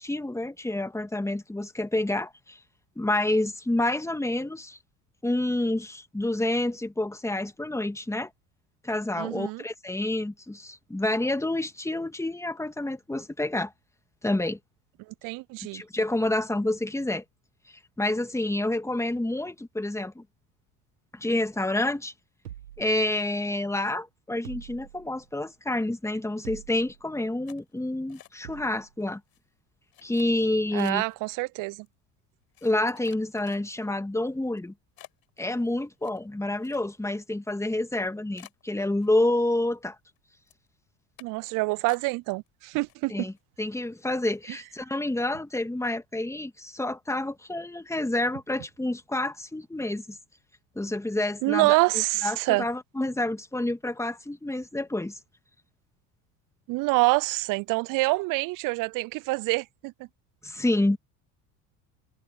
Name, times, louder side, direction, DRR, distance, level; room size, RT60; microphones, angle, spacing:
voice 1, 0.0-2.6 3.0-4.8 5.2-8.3 8.8-13.7 14.2-14.6 15.7-17.2 18.0-20.2 21.1-22.1 22.8-29.2 30.0-31.0 32.6-34.7 35.4-40.0 43.1-50.2 50.8-51.8 52.2-55.2 60.4-61.0, left 1 dB, 5° left, 2.0 m, -28 dB
voice 2, 9.2-9.6 15.1-15.8 30.7-31.9 41.2-43.3 51.4-52.7 56.7-60.1, right 25 dB, 45° right, 0.4 m, -26 dB
sound 1, 22.4-23.6 24.4-25.3 26.4-27.1 28.4-28.9, right 11 dB, 90° right, 1.5 m, -45 dB
sound 2, 27.5-28.7 29.0-29.4 29.9-31.2 31.9-32.0 32.5-34.0 34.5-34.6 35.0-37.2 37.5-37.6 37.9-38.0 38.4-39.4 39.7-40.2 40.5-40.7 41.2-41.5 41.9-42.5 42.8-43.4 43.8-43.9 44.2-44.5, left 12 dB, 50° left, 7.9 m, -53 dB
hypercardioid pair, 70°, 46 cm